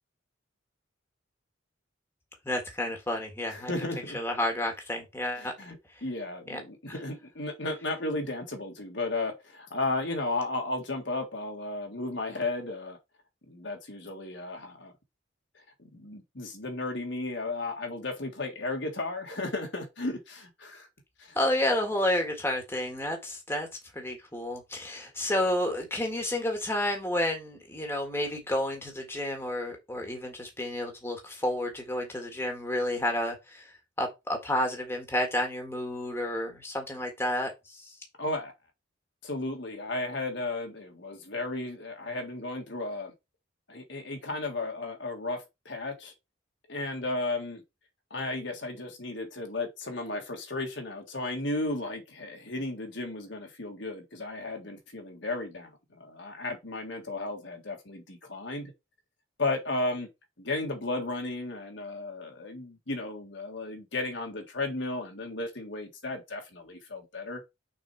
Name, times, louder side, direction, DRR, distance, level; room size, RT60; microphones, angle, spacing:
voice 1, 2.4-3.7 4.1-5.5 5.9-6.0 6.5-6.6 6.9-7.0 21.3-23.7 23.9-37.9, left 1 dB, 10° left, 1.6 m, -30 dB
voice 2, 3.5-4.2 5.4-13.0 13.5-14.9 15.9-20.9 21.2-21.3 38.2-38.5 39.2-43.1 43.7-46.1 46.7-47.6 48.1-58.7 59.4-60.1 60.4-67.4, left 2 dB, 60° left, 1.7 m, -34 dB
6.2 x 4.2 x 4.5 m
head